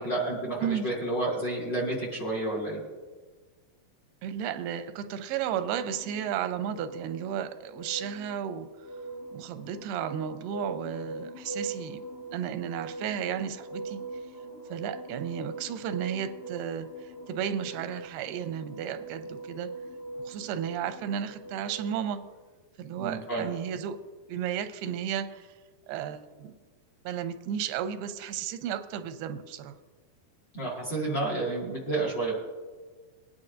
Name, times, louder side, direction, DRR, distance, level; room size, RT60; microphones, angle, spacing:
voice 1, 0.0-2.8 23.0-23.5 30.5-32.3, right 2 dB, 35° left, -3 dB, 2.0 m, -30 dB
voice 2, 4.2-8.7 9.3-12.0 12.3-14.0 14.7-19.7 20.3-22.2 22.8-24.0 24.3-25.5 25.9-26.5 27.0-29.8, right 9 dB, 90° right, 10 dB, 2.6 m, -33 dB
sound 1, 5.7-22.2, right 2 dB, 55° left, 1.7 m, -41 dB
22.0 x 9.7 x 2.6 m, 1.4 s
omnidirectional pair, 4.5 m